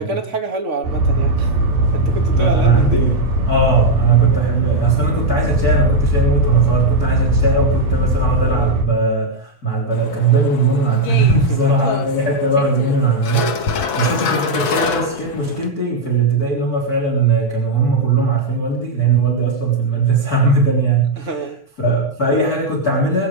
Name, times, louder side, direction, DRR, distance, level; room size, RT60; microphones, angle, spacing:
voice 1, 0.0-1.5 1.9-3.1 8.4-8.8 11.3-11.6 21.2-21.6, right 2 dB, 25° right, 5 dB, 1.8 m, -27 dB
sound 1, 0.8-8.8, right 1 dB, 80° right, 5.3 m, -19 dB
voice 2, 2.3-3.1 3.5-21.3 21.8-23.3, right 4 dB, 25° left, 0 dB, 4.0 m, -18 dB
sound 2, 9.9-15.7, left 5 dB, 50° left, 1.7 m, -25 dB
22.0 x 16.5 x 3.4 m, 0.42 s
omnidirectional pair, 4.2 m